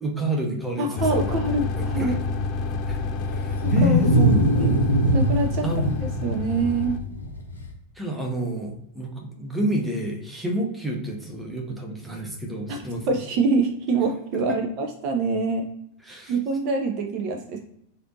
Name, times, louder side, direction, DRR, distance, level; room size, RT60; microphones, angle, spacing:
voice 1, 0.0-1.3 1.8-2.1 2.9-3.0 3.3-4.7 5.6-5.9 7.9-13.1 14.5-14.6 16.0-16.4, right 1 dB, 5° right, 0 dB, 0.8 m, -29 dB
voice 2, 0.8-2.2 3.6-4.1 4.6-4.8 5.1-5.6 5.9-7.0 12.7-12.8 13.1-15.7 16.3-17.6, right 3 dB, 40° right, 3 dB, 0.4 m, -25 dB
sound 1, 1.0-7.0, left 3 dB, 35° left, 0.3 m, -29 dB
Wild animals, 2.6-7.7, equal, 75° left, 0.7 m, -22 dB
3.2 x 2.5 x 2.7 m, 0.76 s
figure-of-eight pair, 90°, 0 cm